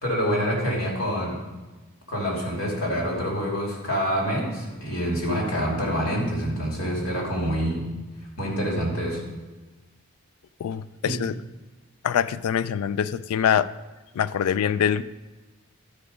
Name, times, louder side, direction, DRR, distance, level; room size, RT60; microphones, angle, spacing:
voice 1, 0.0-1.4 2.1-7.9 8.4-9.2 11.0-11.2, equal, 70° left, -2 dB, 2.8 m, -26 dB
voice 2, 10.6-11.4 12.0-13.7 14.2-15.0, left 8 dB, 85° left, 16 dB, 0.3 m, -24 dB
12.0 x 5.0 x 5.0 m, 1.2 s
head